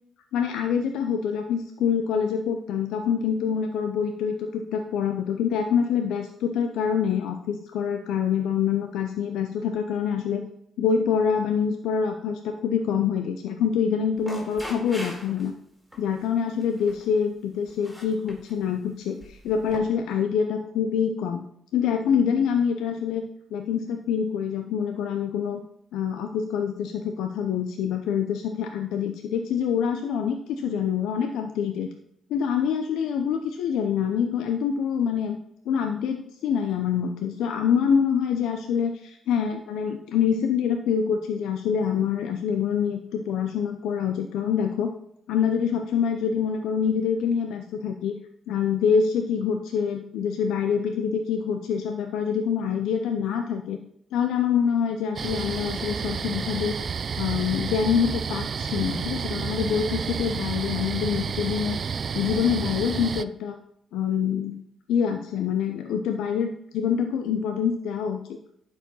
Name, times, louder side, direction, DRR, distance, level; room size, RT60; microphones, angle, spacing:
voice 1, 0.3-10.4 10.8-15.5 16.0-21.4 21.7-23.2 23.5-25.6 25.9-31.9 32.3-35.4 35.7-44.9 45.3-48.1 48.5-53.8 54.1-56.8 57.2-61.8 62.1-63.6 63.9-64.6 64.9-68.4, left 7 dB, 85° left, 5 dB, 0.7 m, -25 dB
sound 1, 14.2-15.5 15.9-16.2 16.6-17.1 17.7-18.5 19.2-19.8, equal, ahead, 4.6 m, -41 dB
sound 2, 55.2-63.2, right 6 dB, 50° right, 0.4 m, -30 dB
11.0 x 4.9 x 5.5 m, 0.71 s
cardioid pair, 70°, 0 cm